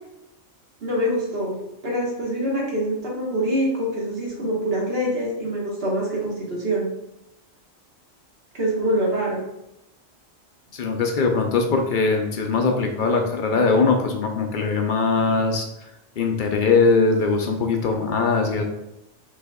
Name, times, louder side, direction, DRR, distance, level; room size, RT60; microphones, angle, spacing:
voice 1, 0.8-1.5 1.8-6.9 8.5-9.4, equal, 60° right, -3 dB, 1.4 m, -25 dB
voice 2, 10.7-15.7 16.2-18.6, left 4 dB, 60° left, 3 dB, 0.6 m, -21 dB
5.3 x 3.4 x 2.2 m, 0.87 s
omnidirectional pair, 1.2 m